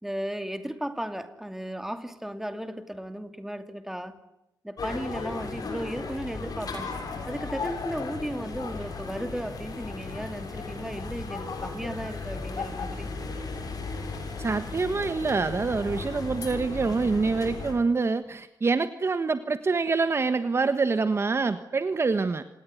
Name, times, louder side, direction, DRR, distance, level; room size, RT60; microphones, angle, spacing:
voice 1, 0.0-4.2 4.6-7.0 7.3-13.1, equal, 5° right, 9 dB, 2.6 m, -35 dB
sound 1, 4.8-17.7, left 4 dB, 65° left, 6.6 m, -36 dB
voice 2, 14.4-22.4, right 4 dB, 40° right, 11 dB, 1.4 m, -26 dB
27.0 x 19.5 x 9.6 m, 0.87 s
wide cardioid pair, 120°, 7 cm